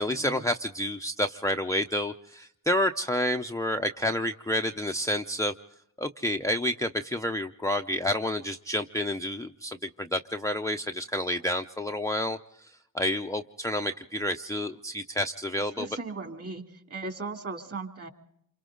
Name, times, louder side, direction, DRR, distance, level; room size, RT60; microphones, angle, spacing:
voice 1, 0.0-5.5 6.0-15.9, equal, 5° left, 4 dB, 0.7 m, -29 dB
voice 2, 15.8-16.6 16.9-18.1, right 3 dB, 35° right, 5 dB, 2.8 m, -37 dB
27.5 x 24.5 x 3.9 m, 0.77 s
supercardioid pair, 55°, 43 cm